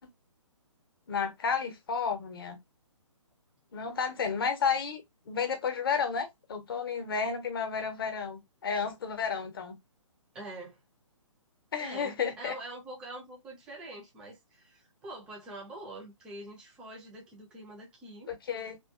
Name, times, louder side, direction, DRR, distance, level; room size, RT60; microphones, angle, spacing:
voice 1, 1.1-2.6 3.7-5.0 5.3-9.7 11.7-12.5 18.3-18.8, left 6 dB, 45° left, 0.7 m, -32 dB
voice 2, 10.3-10.8 11.8-18.3, right 2 dB, 5° right, 0.3 m, -45 dB
2.6 x 2.3 x 2.2 m
figure-of-eight pair, 135°, 17 cm